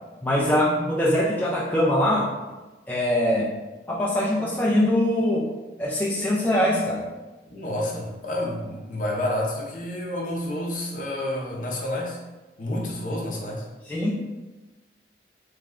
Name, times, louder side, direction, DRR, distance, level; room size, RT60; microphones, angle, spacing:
voice 1, 0.2-2.3 2.9-3.5 3.9-5.5 5.8-7.1 13.9-14.2, left 1 dB, 10° left, -6 dB, 0.4 m, -22 dB
voice 2, 7.5-12.2 12.6-13.6, left 1 dB, 50° left, -2 dB, 0.7 m, -29 dB
3.1 x 2.2 x 3.6 m, 1.1 s
head